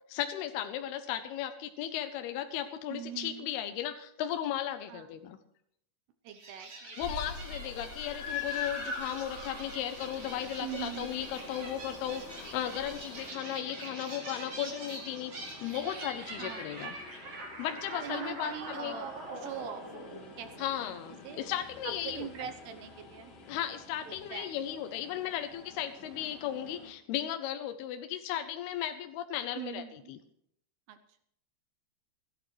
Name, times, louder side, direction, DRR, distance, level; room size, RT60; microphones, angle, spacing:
voice 1, 0.1-5.4 7.0-17.0 17.6-19.0 20.6-22.3 23.5-30.2, left 11 dB, 80° left, 7 dB, 2.4 m, -36 dB
voice 2, 2.9-3.5 4.9-5.1 6.2-7.1 10.6-11.1 16.4-16.8 18.0-19.8 20.4-20.5 20.8-21.0 21.2-21.4 22.0-23.3 24.1-24.5 29.6-30.0 30.9-31.2, right 9 dB, 75° right, 8 dB, 2.7 m, -42 dB
sound 1, 6.3-21.0, right 2 dB, 35° right, 4.2 m, -44 dB
sound 2, 7.0-13.3, left 5 dB, 55° left, 4.1 m, -41 dB
sound 3, 9.9-26.9, left 3 dB, 40° left, 2.8 m, -52 dB
28.0 x 11.0 x 3.2 m, 0.71 s
omnidirectional pair, 5.3 m